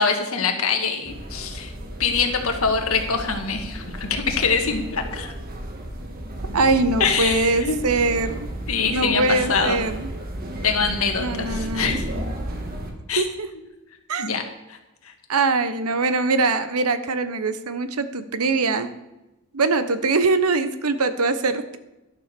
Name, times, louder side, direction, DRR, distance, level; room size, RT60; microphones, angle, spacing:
voice 1, 0.0-1.7 2.0-5.3 7.0-7.8 8.7-9.8 10.6-12.0 13.1-13.2 14.2-14.4, left 5 dB, 70° left, 4 dB, 1.7 m, -24 dB
sound 1, 1.0-12.9, right 1 dB, 40° right, 1.6 m, -33 dB
voice 2, 6.5-8.5 8.9-10.1 11.2-12.0 13.2-13.5 14.1-14.5 15.3-18.9 19.5-21.8, right 3 dB, 85° right, 11 dB, 0.9 m, -22 dB
12.0 x 7.0 x 6.8 m, 0.98 s
head